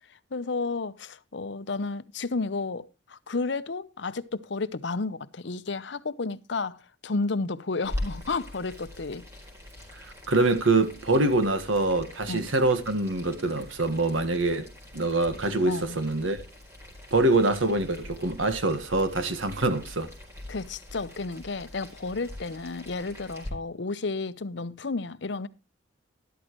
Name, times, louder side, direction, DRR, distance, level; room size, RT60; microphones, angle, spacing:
voice 1, 0.3-9.3 12.3-12.5 15.6-16.0 20.5-25.5, left 3 dB, 65° left, 0.7 m, -32 dB
Boiling, 7.8-23.5, left 1 dB, 15° right, 4.3 m, -42 dB
voice 2, 10.3-14.7 14.9-16.4 17.1-20.1, right 2 dB, 85° right, 1.6 m, -24 dB
13.0 x 12.0 x 3.0 m
head